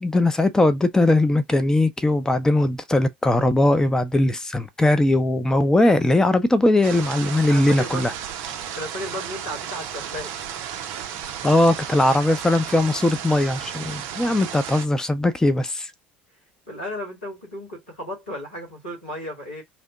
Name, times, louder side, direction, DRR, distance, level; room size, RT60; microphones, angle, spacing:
voice 1, 0.0-8.1 11.4-15.9, left 1 dB, 10° left, 0.6 m, -20 dB
sound 1, 6.8-14.9, right 9 dB, 55° right, 0.5 m, -33 dB
voice 2, 7.5-8.1 8.7-10.3 16.7-19.6, equal, 80° left, 1.5 m, -34 dB
2.9 x 2.0 x 3.7 m
figure-of-eight pair, 65°, 5 cm